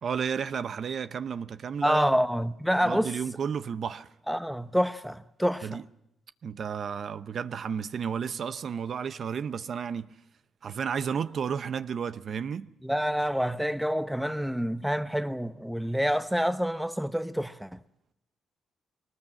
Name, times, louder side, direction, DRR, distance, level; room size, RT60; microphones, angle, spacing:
voice 1, 0.0-2.1 2.8-4.1 5.6-5.8 6.4-10.1 10.6-12.7, right 7 dB, 55° right, 0.7 m, -32 dB
voice 2, 1.8-3.1 4.3-5.8 12.8-17.8, equal, ahead, 0.8 m, -27 dB
22.0 x 19.5 x 7.7 m
cardioid pair, 90°, 0 cm